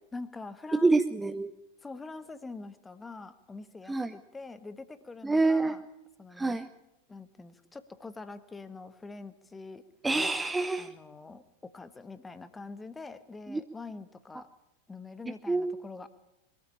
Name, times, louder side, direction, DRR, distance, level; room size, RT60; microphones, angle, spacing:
voice 1, 0.1-0.9 1.8-5.8 6.2-6.6 7.1-9.8 10.8-14.5 14.9-16.1, left 3 dB, 10° left, 13 dB, 1.3 m, -44 dB
voice 2, 0.7-1.5 3.9-4.1 5.2-5.8 6.3-6.7 10.0-10.9 13.5-13.6 15.5-15.7, right 3 dB, 10° right, 10 dB, 0.7 m, -26 dB
22.5 x 14.0 x 8.7 m, 0.93 s
figure-of-eight pair, 90°, 0 cm